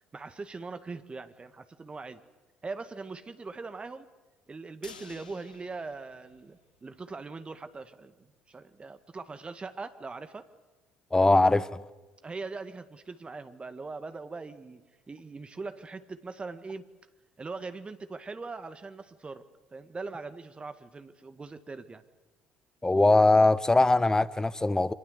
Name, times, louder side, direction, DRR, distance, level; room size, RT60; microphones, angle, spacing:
voice 1, 0.1-2.2 2.6-4.1 4.5-10.5 12.2-14.8 15.1-16.9 17.4-19.5 19.7-22.0, right 3 dB, 25° right, 1.9 m, -41 dB
sound 1, 4.8-7.0 7.3-7.4 7.7-7.8, left 5 dB, 85° left, 1.6 m, -52 dB
voice 2, 11.1-11.7 22.8-24.9, left 2 dB, 15° left, 1.3 m, -21 dB
27.5 x 26.5 x 8.2 m
figure-of-eight pair, 55°, 4 cm